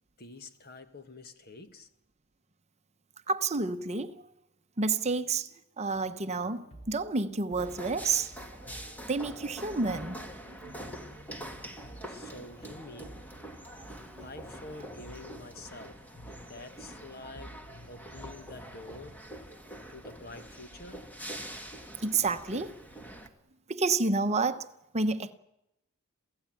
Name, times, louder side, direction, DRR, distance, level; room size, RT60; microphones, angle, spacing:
voice 1, 0.2-1.9 12.1-13.3 14.2-16.1 16.5-19.2 19.9-21.1, left 2 dB, 45° left, 1.6 m, -47 dB
voice 2, 3.3-4.2 4.8-5.5 5.8-8.3 9.1-10.3 10.6-10.9 14.0-14.3 22.0-22.8 23.7-24.7 24.9-25.3, right 3 dB, 30° right, 0.9 m, -30 dB
sound 1, 5.9-19.0, right 1 dB, 30° left, 4.5 m, -53 dB
sound 2, 7.6-23.3, right 1 dB, 10° left, 1.9 m, -45 dB
28.0 x 16.5 x 9.1 m
head